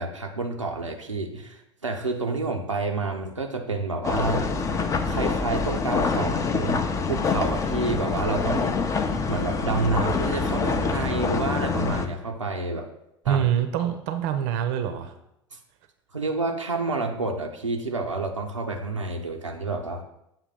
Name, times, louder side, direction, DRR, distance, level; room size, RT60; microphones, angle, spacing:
voice 1, 0.0-4.4 5.1-8.8 9.3-12.9 13.2-13.5 16.1-20.0, right 3 dB, 90° right, 2 dB, 0.6 m, -29 dB
sound 1, 4.0-12.1, left 4 dB, 20° left, 0.5 m, -26 dB
voice 2, 13.3-15.1, right 9 dB, 50° right, 7 dB, 0.6 m, -25 dB
7.4 x 2.8 x 5.3 m, 0.80 s
figure-of-eight pair, 75°, 16 cm